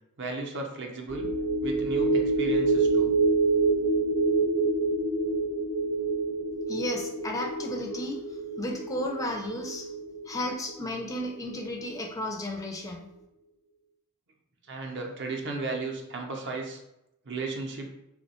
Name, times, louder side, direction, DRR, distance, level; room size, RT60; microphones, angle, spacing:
voice 1, 0.2-1.3 1.6-3.1 14.6-16.8 17.3-17.9, right 3 dB, 55° right, 2 dB, 0.6 m, -35 dB
sound 1, 1.1-11.7 12.0-12.2, right 3 dB, 80° left, 0.7 m, -27 dB
voice 2, 6.7-8.2 8.6-9.9 10.3-13.1, left 1 dB, 15° left, 1 dB, 0.4 m, -33 dB
2.9 x 2.2 x 4.1 m, 0.86 s
head